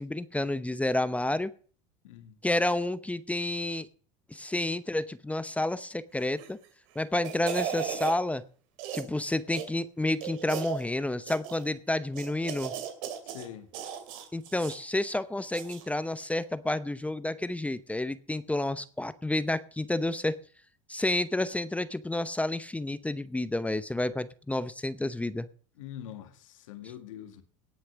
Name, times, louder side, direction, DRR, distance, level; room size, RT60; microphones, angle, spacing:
voice 1, 0.0-1.5 2.4-3.9 4.3-6.6 7.0-8.4 8.9-12.7 14.3-20.4 20.9-25.5, left 1 dB, 10° left, 0.7 m, -30 dB
voice 2, 2.0-2.4 13.2-13.7 25.8-27.4, left 11 dB, 85° left, 2.0 m, -44 dB
sound 1, 6.3-6.7 7.0-8.2 8.8-9.2 9.5-9.7 10.2-10.8 11.3-11.7 12.1-13.5 13.7-14.8 15.5-15.9 16.2-16.3, right 9 dB, 75° right, 2.6 m, -36 dB
18.0 x 6.4 x 6.2 m
hypercardioid pair, 90°, 17 cm